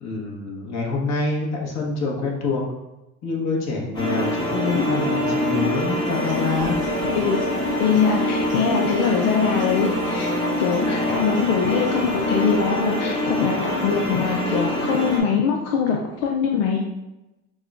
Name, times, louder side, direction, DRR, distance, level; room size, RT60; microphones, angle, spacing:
voice 1, 0.0-2.6 3.2-6.8, left 3 dB, 35° left, -1 dB, 1.2 m, -26 dB
sound 1, 3.9-15.2, left 1 dB, 10° left, 1.0 m, -24 dB
sound 2, 6.0-13.0, right 3 dB, 25° right, 0.9 m, -40 dB
voice 2, 7.8-16.8, left 6 dB, 70° left, 1 dB, 0.6 m, -23 dB
6.1 x 2.3 x 2.4 m, 0.96 s
supercardioid pair, 100°, 44 cm